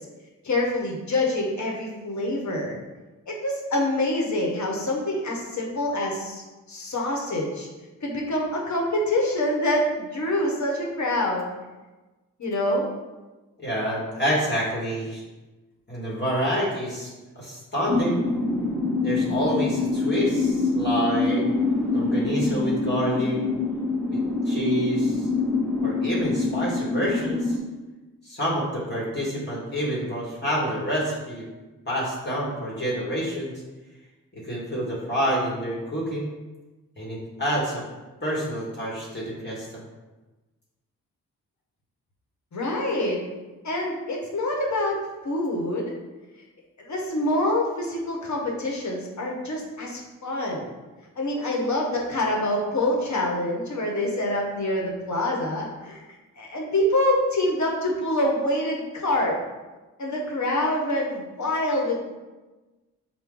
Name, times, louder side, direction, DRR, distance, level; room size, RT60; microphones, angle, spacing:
voice 1, 0.4-2.8 3.3-6.4 6.7-7.7 8.0-11.5 12.4-12.9 42.5-43.2 43.6-45.9 46.8-50.7 51.2-56.0 56.4-59.4 60.0-62.0, left 1 dB, 50° left, -1 dB, 1.1 m, -26 dB
voice 2, 13.6-15.2 15.9-18.2 19.0-21.5 21.9-23.4 24.1-25.3 25.8-27.6 28.2-31.4 31.9-33.5 34.3-36.3 37.0-37.8 38.2-39.7, equal, 30° left, -5 dB, 1.3 m, -28 dB
sound 1, 17.9-27.6, left 3 dB, 5° left, 0.9 m, -25 dB
4.5 x 2.2 x 3.7 m, 1.2 s
supercardioid pair, 40°, 37 cm